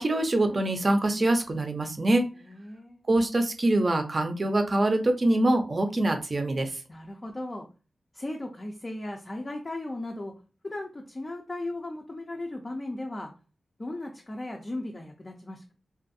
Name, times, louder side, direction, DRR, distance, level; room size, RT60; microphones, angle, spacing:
voice 1, 0.0-2.2 3.1-6.7, right 1 dB, 40° right, 6 dB, 0.5 m, -24 dB
voice 2, 2.3-3.1 6.9-7.7 8.1-10.3 10.6-13.3 13.8-15.7, left 1 dB, 30° left, 1 dB, 0.4 m, -36 dB
2.6 x 2.4 x 2.6 m, 0.34 s
wide cardioid pair, 95°, 0 cm